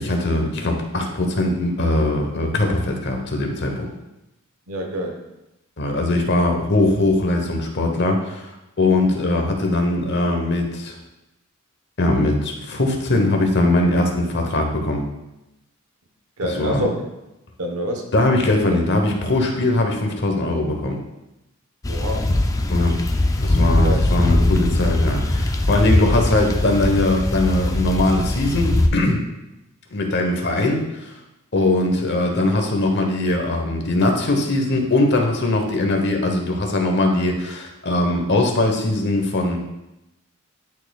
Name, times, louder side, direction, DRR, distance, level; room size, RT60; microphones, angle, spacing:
voice 1, 0.0-3.9 5.8-11.0 12.0-15.0 16.4-16.9 18.1-21.0 22.7-23.0 23.4-29.2 29.9-31.1 31.5-39.6, left 2 dB, 50° left, 2 dB, 1.0 m, -21 dB
voice 2, 4.7-5.2 16.4-17.0 17.6-18.1 21.9-22.3 23.8-24.0, equal, 85° right, 3 dB, 1.1 m, -26 dB
sound 1, 21.8-28.9, left 1 dB, 15° left, 0.4 m, -20 dB
11.0 x 4.3 x 2.4 m, 0.93 s
head